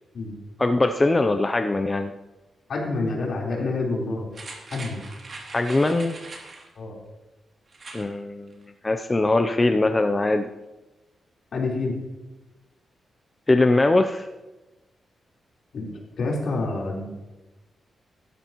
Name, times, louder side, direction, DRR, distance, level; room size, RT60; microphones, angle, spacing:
voice 1, 0.6-2.1 5.5-6.2 7.9-8.5 8.8-10.5 13.5-14.3, left 2 dB, 20° left, 7 dB, 0.5 m, -21 dB
voice 2, 2.7-4.3 4.7-5.0 6.8-6.9 11.5-12.0 15.7-15.9 16.2-17.1, left 3 dB, 65° left, -3 dB, 3.9 m, -27 dB
sound 1, 4.3-6.7 7.7-8.1 8.5-8.6, right 3 dB, 40° right, 2.7 m, -41 dB
15.5 x 13.5 x 3.0 m, 1.1 s
wide cardioid pair, 130°, 0 cm